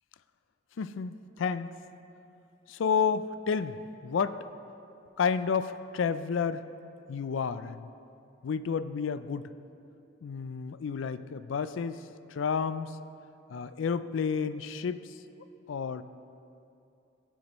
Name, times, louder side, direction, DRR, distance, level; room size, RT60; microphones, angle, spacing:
voice 1, 0.8-1.7 2.7-3.8 4.0-4.4 5.2-6.6 7.1-7.9 8.4-9.4 10.2-12.0 12.3-12.9 13.5-15.0 15.7-16.0, left 6 dB, 75° left, 13 dB, 0.4 m, -30 dB
16.0 x 8.3 x 3.0 m, 2.7 s
head